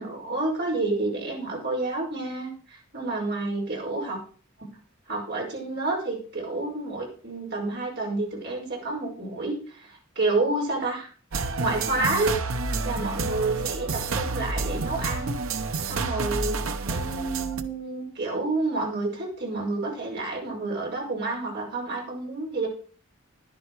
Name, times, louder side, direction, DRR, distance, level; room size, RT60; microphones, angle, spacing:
voice 1, 0.0-4.2 5.1-11.1 11.6-12.3 12.8-15.3 15.9-16.6 16.8-22.7, right 2 dB, 50° right, -1 dB, 5.2 m, -29 dB
sound 1, 11.3-17.6, right 3 dB, 75° right, 0.9 m, -29 dB
11.0 x 10.5 x 4.7 m, 0.41 s
head